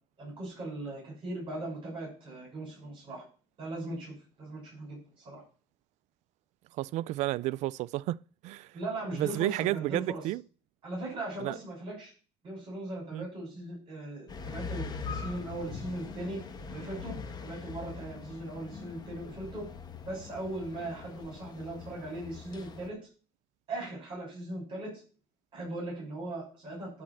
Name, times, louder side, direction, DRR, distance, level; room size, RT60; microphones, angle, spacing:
voice 1, 0.2-3.2 3.6-5.0 5.2-5.4 8.7-10.2 10.8-12.1 12.4-16.4 16.7-17.1 17.4-19.7 20.1-23.0 23.7-25.0 25.5-27.0, right 1 dB, 45° right, 6.4 m, -39 dB
voice 2, 6.8-8.2 8.4-8.7 9.1-10.4 11.4-11.6 13.1-13.3, right 17 dB, 75° right, 0.4 m, -31 dB
sound 1, 14.3-22.9, left 5 dB, 35° left, 1.3 m, -42 dB
11.0 x 4.2 x 7.6 m
cardioid pair, 125°, 12 cm